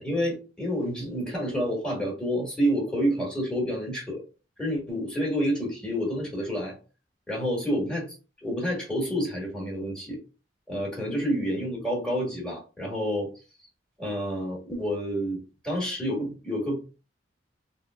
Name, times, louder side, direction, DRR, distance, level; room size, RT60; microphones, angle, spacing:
voice 1, 0.0-4.2 4.6-6.8 7.3-8.1 8.4-10.2 10.7-13.3 14.0-15.4 15.6-17.0, equal, 5° left, -3 dB, 1.5 m, -29 dB
3.6 x 2.1 x 3.4 m, 0.33 s
head